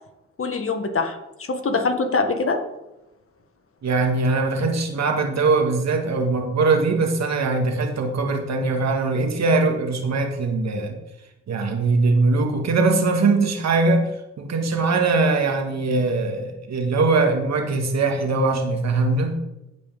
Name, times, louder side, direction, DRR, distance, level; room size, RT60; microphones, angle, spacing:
voice 1, 0.4-2.6, left 3 dB, 45° left, 5 dB, 1.6 m, -24 dB
voice 2, 3.8-11.0 11.5-14.1 14.4-19.4, right 3 dB, 60° right, 3 dB, 1.9 m, -21 dB
14.5 x 5.2 x 3.7 m, 0.93 s
supercardioid pair, 55°, 31 cm